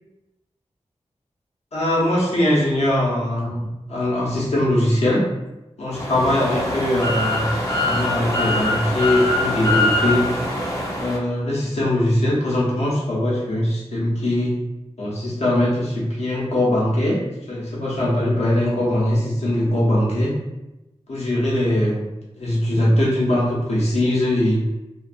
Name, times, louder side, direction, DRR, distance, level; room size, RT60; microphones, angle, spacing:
voice 1, 1.7-5.2 5.8-7.5 7.8-10.3 11.0-14.6 15.0-17.2 17.5-20.3 21.1-22.0 22.3-24.6, left 1 dB, 85° left, -5 dB, 0.7 m, -21 dB
sound 1, 5.9-11.2, left 2 dB, 30° left, 0.6 m, -23 dB
2.5 x 2.3 x 2.3 m, 0.98 s
wide cardioid pair, 80°, 11 cm